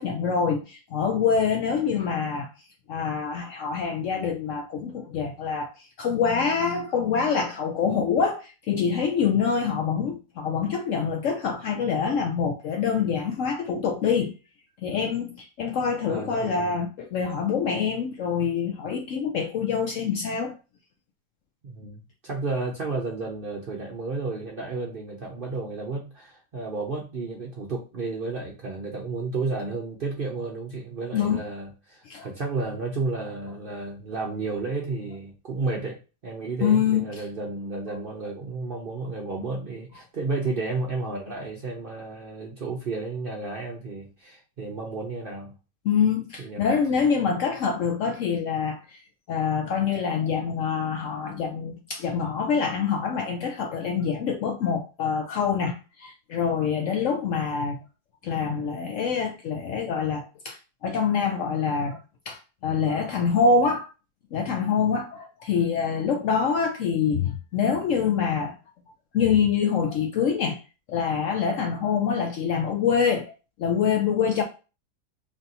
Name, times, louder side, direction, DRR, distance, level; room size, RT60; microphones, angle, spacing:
voice 1, 0.0-2.5 2.9-14.3 14.8-20.5 31.1-31.4 32.1-32.3 36.6-37.1 45.8-49.0 49.3-57.8 58.2-62.0 62.3-63.9 64.3-68.5 69.1-70.6 70.9-73.3 73.6-74.4, left 6 dB, 70° left, 0.8 m, -25 dB
voice 2, 16.1-16.8 21.6-36.0 36.2-45.5 46.4-46.7, right 3 dB, 50° right, 0.7 m, -32 dB
3.3 x 2.7 x 3.9 m
omnidirectional pair, 1.7 m